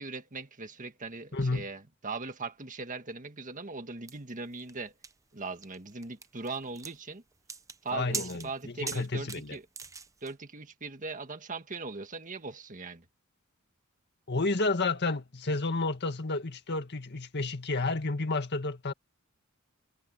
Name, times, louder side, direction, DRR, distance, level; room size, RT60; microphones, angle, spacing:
voice 1, 0.0-4.9 5.3-7.2 7.8-9.6 10.2-13.0, right 3 dB, 35° right, 1.8 m, -40 dB
voice 2, 1.3-1.6 7.9-9.6 14.3-18.9, left 3 dB, 50° left, 1.9 m, -31 dB
sound 1, 4.1-10.3, right 5 dB, 15° right, 0.8 m, -42 dB
head